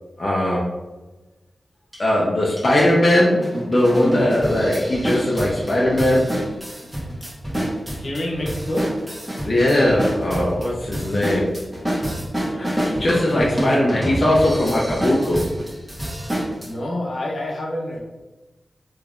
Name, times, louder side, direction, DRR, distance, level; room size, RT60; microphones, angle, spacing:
voice 1, 0.2-0.7 2.0-6.5 9.4-11.7 12.5-15.5, left 1 dB, 55° left, -5 dB, 0.6 m, -19 dB
sound 1, 1.9-2.0 2.6-2.7 3.2-16.7, right 1 dB, 15° right, 1.3 m, -27 dB
voice 2, 7.9-8.9 16.6-18.0, left 1 dB, 75° left, -3 dB, 0.9 m, -28 dB
3.4 x 3.1 x 2.4 m, 1.1 s
cardioid pair, 55°, 0 cm